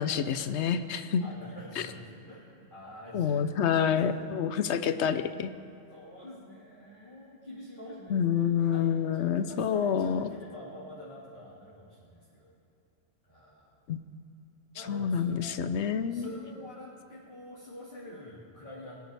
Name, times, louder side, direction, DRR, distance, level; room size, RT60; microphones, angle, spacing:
voice 1, 0.0-1.3 3.1-5.5 8.1-10.3 13.9-14.0 14.9-16.3, left 7 dB, 65° left, 11 dB, 0.9 m, -28 dB
voice 2, 1.0-4.3 4.9-5.2 5.9-8.9 9.2-12.5 13.3-13.8 14.7-15.6 16.1-19.0, left 1 dB, 40° left, -8 dB, 2.5 m, -47 dB
23.0 x 10.5 x 3.4 m, 2.7 s
omnidirectional pair, 1.3 m